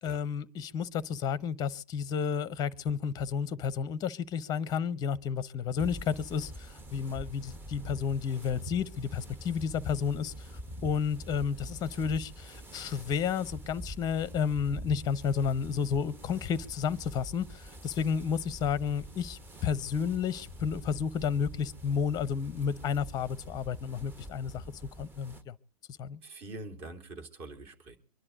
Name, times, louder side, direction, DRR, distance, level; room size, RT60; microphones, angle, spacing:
voice 1, 0.0-10.5 10.8-24.6 25.0-25.6 26.0-26.2, left 7 dB, 20° left, 0.8 m, -31 dB
sound 1, 5.8-25.4, right 1 dB, 10° right, 1.1 m, -45 dB
voice 2, 26.2-28.0, right 2 dB, 30° right, 3.2 m, -44 dB
25.0 x 11.0 x 4.0 m
figure-of-eight pair, 110°, 19 cm